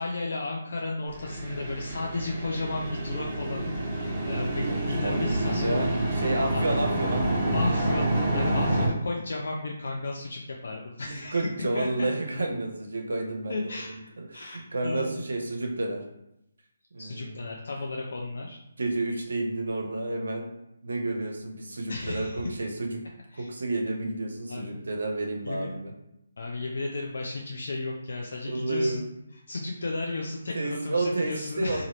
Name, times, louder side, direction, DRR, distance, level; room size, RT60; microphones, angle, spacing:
voice 1, 0.0-5.8 6.5-6.8 7.5-11.4 11.7-12.1 13.5-15.2 17.0-18.6 21.9-22.4 23.3-23.5 24.5-24.8 25.4-25.7 26.4-29.1 29.5-31.9, left 2 dB, 65° left, -1 dB, 0.4 m, -34 dB
sound 1, 1.1-8.9, right 1 dB, 15° right, 1.0 m, -28 dB
voice 2, 4.7-7.4 11.1-13.7 14.2-16.0 16.9-17.5 18.8-20.5 20.8-23.0 23.4-25.9 28.4-29.0 30.5-31.9, right 2 dB, 75° right, 1 dB, 0.6 m, -30 dB
2.9 x 2.4 x 3.0 m, 0.84 s
figure-of-eight pair, 150°, 0 cm